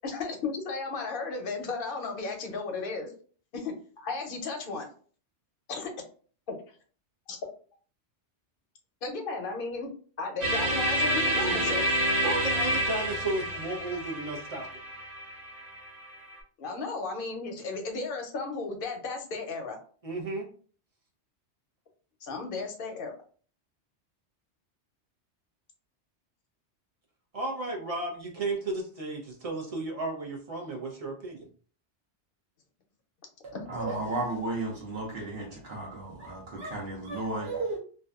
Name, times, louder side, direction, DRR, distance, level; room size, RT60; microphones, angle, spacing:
voice 1, 0.0-3.1 3.6-3.7 4.0-4.9 5.7-5.9 6.5-6.8 7.3-7.4 9.0-9.9 10.2-11.9 16.6-19.8 22.2-23.2 33.5-33.7, left 4 dB, 55° left, 3 dB, 0.7 m, -34 dB
sound 1, 10.4-16.3, right 1 dB, 90° right, 1.3 m, -29 dB
voice 2, 11.4-11.8 12.2-14.8 20.0-20.5 27.3-31.5, right 2 dB, 40° right, 0 dB, 0.6 m, -34 dB
voice 3, 33.4-37.8, right 2 dB, 65° right, -3 dB, 1.0 m, -34 dB
2.6 x 2.2 x 2.3 m, 0.43 s
omnidirectional pair, 1.2 m